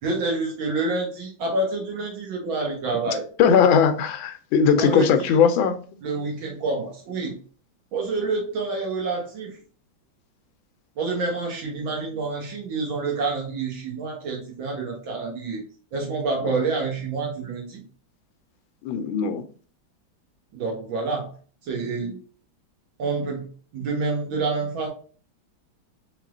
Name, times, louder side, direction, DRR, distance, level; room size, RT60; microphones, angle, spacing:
voice 1, 0.0-3.3 4.7-5.3 6.0-7.3 7.9-9.6 11.0-15.6 15.9-17.8 20.5-21.3 21.6-22.2 23.0-23.5 23.7-24.9, right 3 dB, 75° right, 2.0 m, -28 dB
voice 2, 3.4-5.8 16.4-16.5 18.8-19.4, left 7 dB, 80° left, 1.3 m, -19 dB
4.3 x 3.4 x 2.4 m
omnidirectional pair, 2.2 m